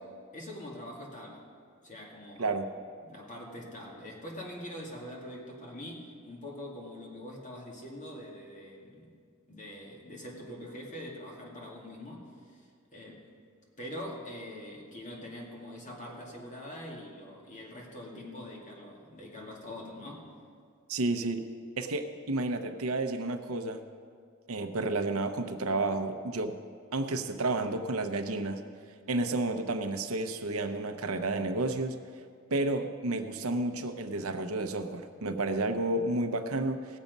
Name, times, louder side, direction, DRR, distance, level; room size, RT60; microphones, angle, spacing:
voice 1, 0.3-1.4 1.8-2.6 3.0-9.1 9.5-13.3 13.8-20.3, left 1 dB, 35° left, -1 dB, 2.2 m, -44 dB
voice 2, 20.9-21.4 21.8-23.8 24.5-26.6 26.9-28.6 29.1-32.0 32.5-36.9, right 2 dB, 80° right, 7 dB, 0.8 m, -31 dB
18.0 x 7.3 x 5.3 m, 2.1 s
head